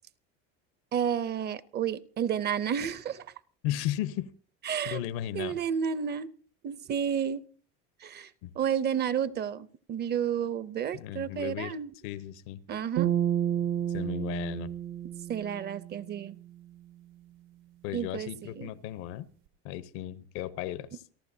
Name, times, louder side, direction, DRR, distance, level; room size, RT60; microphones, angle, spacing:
voice 1, 0.9-3.3 4.7-5.0 5.3-6.3 6.6-7.4 8.0-8.3 8.6-11.9 12.7-13.1 15.3-16.3 17.9-18.3 18.6-18.7, right 8 dB, 30° right, 19 dB, 0.6 m, -31 dB
voice 2, 3.6-4.3 4.8-5.6 8.4-8.5 10.9-11.7 12.0-12.6 13.9-14.7 17.8-19.3 19.6-21.0, left 13 dB, 80° left, 16 dB, 1.0 m, -35 dB
sound 1, 13.0-16.3, right 10 dB, 90° right, 1.9 m, -31 dB
28.5 x 11.5 x 2.7 m, 0.40 s
cardioid pair, 135°, 32 cm